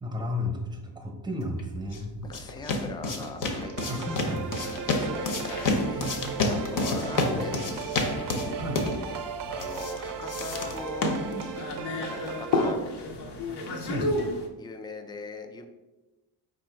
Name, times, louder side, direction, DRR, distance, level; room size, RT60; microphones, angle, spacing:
voice 1, 0.0-2.2 3.9-4.6 6.0-6.6 7.0-7.4 8.6-8.8 13.9-14.1, left 1 dB, 10° right, 3 dB, 0.8 m, -34 dB
sound 1, 1.6-11.6, left 2 dB, 50° left, 0.8 m, -31 dB
voice 2, 2.2-4.1 4.6-6.1 6.4-7.8 8.3-9.0 9.5-11.2 12.1-12.9 14.6-15.7, left 3 dB, 10° left, 6 dB, 0.3 m, -40 dB
sound 2, 3.5-12.7, right 7 dB, 55° right, 0.5 m, -37 dB
sound 3, 4.3-14.5, left 2 dB, 80° left, 0.9 m, -34 dB
4.5 x 2.6 x 4.4 m, 1.1 s
cardioid pair, 120°, 40 cm